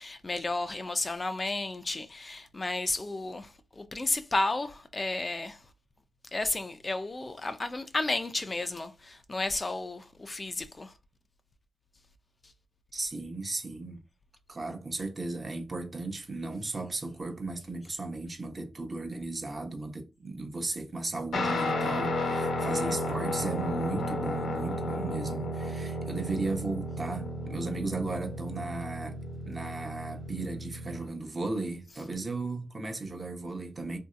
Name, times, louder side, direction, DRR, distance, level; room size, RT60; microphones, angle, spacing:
voice 1, 0.0-5.6 6.3-10.9, left 2 dB, 35° left, 0.4 m, -32 dB
voice 2, 12.9-14.0 14.5-29.2 29.4-34.0, right 3 dB, 40° right, 0.8 m, -35 dB
Guitar, 21.3-31.1, left 1 dB, 85° left, 0.9 m, -33 dB
2.9 x 2.7 x 2.4 m
cardioid pair, 65°, 0 cm